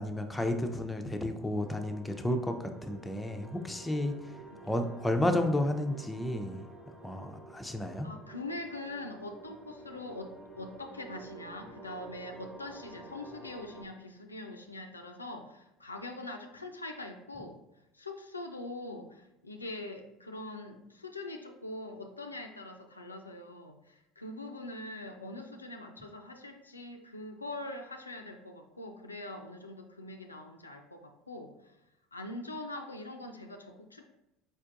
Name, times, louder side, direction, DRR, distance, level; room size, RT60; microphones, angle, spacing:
voice 1, 0.0-2.5 2.8-4.1 4.7-6.6 7.0-8.1, left 1 dB, 10° left, 5 dB, 0.5 m, -31 dB
sound 1, 1.6-13.9, right 2 dB, 5° right, 1.1 m, -50 dB
voice 2, 8.0-17.6 17.9-31.8 32.1-34.1, left 2 dB, 90° left, 4 dB, 0.3 m, -43 dB
4.5 x 4.4 x 2.5 m, 0.89 s
figure-of-eight pair, 70°, 0 cm